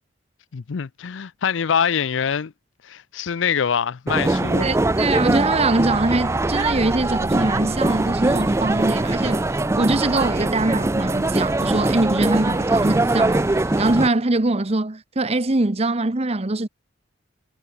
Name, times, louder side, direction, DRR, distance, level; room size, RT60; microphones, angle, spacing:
voice 1, 0.5-2.5 2.8-4.7, left 7 dB, 75° left, 0.5 m, -24 dB
sound 1, 4.1-14.1, right 2 dB, 15° right, 0.4 m, -22 dB
sound 2, 4.5-6.9 7.1-9.7 10.0-14.2, left 7 dB, 55° left, 6.2 m, -51 dB
voice 2, 4.6-9.4 9.7-13.5 13.8-16.7, right 2 dB, 35° right, 1.0 m, -22 dB
head